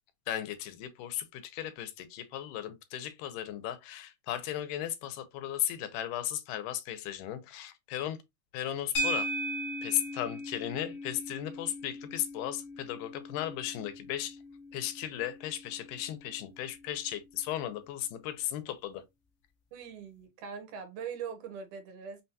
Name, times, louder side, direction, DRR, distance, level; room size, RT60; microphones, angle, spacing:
voice 1, 0.3-8.2 8.5-9.3 9.8-14.4 14.7-19.0, left 12 dB, 85° left, 2.2 m, -36 dB
sound 1, 8.9-17.4, right 1 dB, 65° left, 1.1 m, -39 dB
voice 2, 19.7-22.2, right 7 dB, 75° right, 2.1 m, -41 dB
5.7 x 2.2 x 2.7 m
omnidirectional pair, 3.7 m